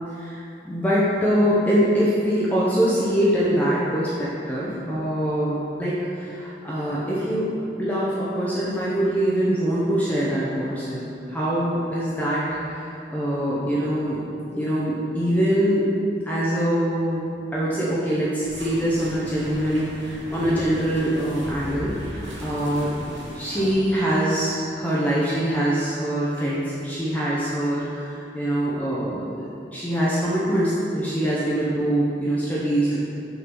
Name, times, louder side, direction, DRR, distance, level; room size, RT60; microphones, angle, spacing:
voice 1, 0.2-7.5 7.8-15.9 16.3-33.0, equal, 10° left, -8 dB, 0.8 m, -24 dB
sound 1, 18.4-23.7, equal, 85° right, 1.3 m, -37 dB
6.2 x 3.9 x 6.0 m, 2.7 s
head